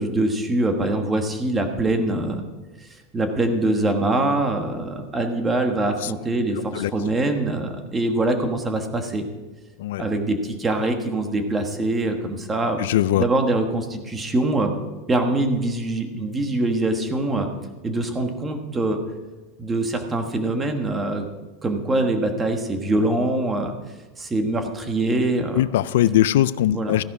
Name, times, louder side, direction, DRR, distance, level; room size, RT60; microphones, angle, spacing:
voice 1, 0.0-2.4 2.8-2.9 3.1-9.2 10.0-12.8 13.2-14.7 15.1-17.5 17.8-19.0 19.6-21.3 21.6-23.7 24.2-25.6 26.7-27.0, right 2 dB, 10° right, 5 dB, 1.3 m, -23 dB
voice 2, 12.8-13.2 25.5-27.0, left 13 dB, 80° left, 17 dB, 0.4 m, -20 dB
15.0 x 11.0 x 4.8 m, 1.1 s
supercardioid pair, 170°, 0 cm